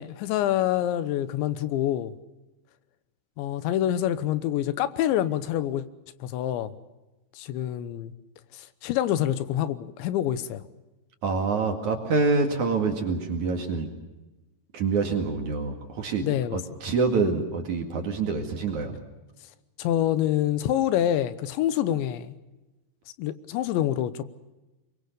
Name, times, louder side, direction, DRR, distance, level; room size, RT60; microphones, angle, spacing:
voice 1, 0.0-2.1 3.4-5.8 6.2-6.7 7.4-8.1 8.5-10.6 16.2-16.6 19.8-22.4 23.2-24.3, left 12 dB, 85° left, 14 dB, 3.3 m, -26 dB
voice 2, 11.2-13.9 14.7-16.3 16.5-18.9, right 4 dB, 50° right, 4 dB, 3.0 m, -26 dB
24.0 x 22.5 x 6.7 m, 1.1 s
omnidirectional pair, 5.1 m